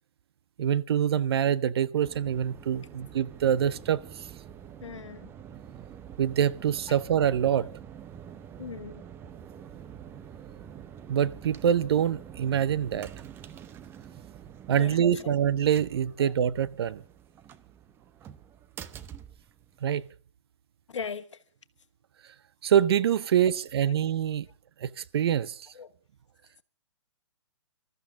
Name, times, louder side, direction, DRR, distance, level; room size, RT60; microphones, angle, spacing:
voice 1, 0.6-4.3 6.2-7.7 11.1-13.1 14.7-17.0 19.8-20.0 22.6-24.5 24.8-25.6, right 9 dB, 50° right, 0.8 m, -25 dB
sound 1, 2.0-20.1, right 9 dB, 15° right, 0.7 m, -46 dB
voice 2, 4.8-5.3 6.9-7.0 8.6-9.0 14.8-15.3 16.2-16.3 20.9-21.4 23.8-23.9 25.7-25.9, left 6 dB, 70° left, 1.6 m, -39 dB
25.5 x 13.5 x 3.7 m
hypercardioid pair, 140°, 16 cm